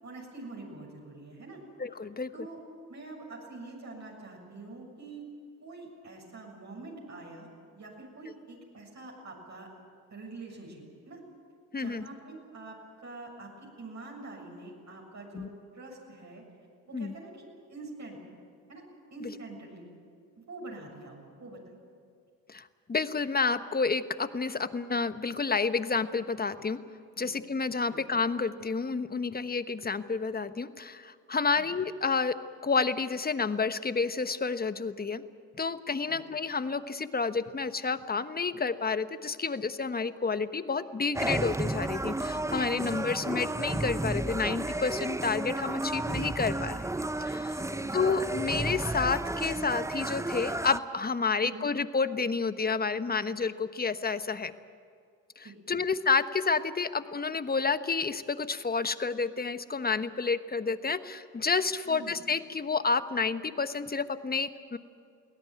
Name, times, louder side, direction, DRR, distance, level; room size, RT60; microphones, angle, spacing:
voice 1, 0.0-1.6 2.3-2.6 2.9-5.3 5.6-7.5 7.7-9.7 10.1-11.2 11.8-12.8 13.0-15.5 15.7-16.4 16.9-18.2 18.7-18.8 19.1-19.8 20.5-21.6 27.2-27.3 27.9-28.0 31.6-31.7 36.0-36.2 47.6-48.0 51.4-51.7 55.4-55.8 61.8-62.1, right 3 dB, 40° right, -2 dB, 7.1 m, -45 dB
voice 2, 1.8-2.3 11.7-12.1 15.3-15.5 16.9-17.1 19.2-19.3 22.5-26.8 27.2-32.4 32.6-35.2 35.5-47.6 47.9-54.5 55.4-64.8, left 4 dB, 20° left, 12 dB, 1.2 m, -30 dB
sound 1, 41.1-50.8, right 2 dB, 5° right, 0.7 m, -32 dB
22.5 x 17.5 x 9.4 m, 2.2 s
hypercardioid pair, 60°, 41 cm